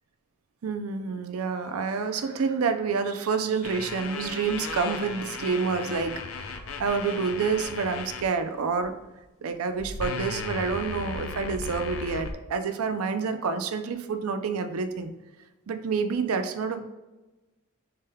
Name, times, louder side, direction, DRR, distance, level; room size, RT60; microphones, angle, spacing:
voice 1, 0.6-8.9 9.4-15.1 15.7-16.8, right 5 dB, 90° right, 8 dB, 0.5 m, -28 dB
sound 1, 3.6-8.2 8.8-9.0 9.8-12.3, left 4 dB, 70° left, 0.5 m, -36 dB
6.6 x 2.2 x 3.4 m, 1.1 s
head